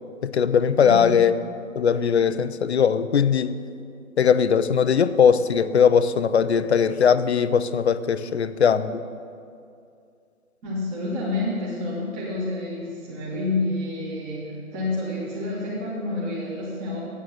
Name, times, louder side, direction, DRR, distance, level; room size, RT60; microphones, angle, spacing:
voice 1, 0.2-1.3 1.8-3.6 4.2-9.0, left 7 dB, 50° left, 13 dB, 0.5 m, -20 dB
voice 2, 0.8-1.1 10.6-14.4 14.7-17.0, left 2 dB, 15° right, -6 dB, 1.4 m, -28 dB
8.3 x 8.0 x 7.5 m, 2.5 s
figure-of-eight pair, 145°, 42 cm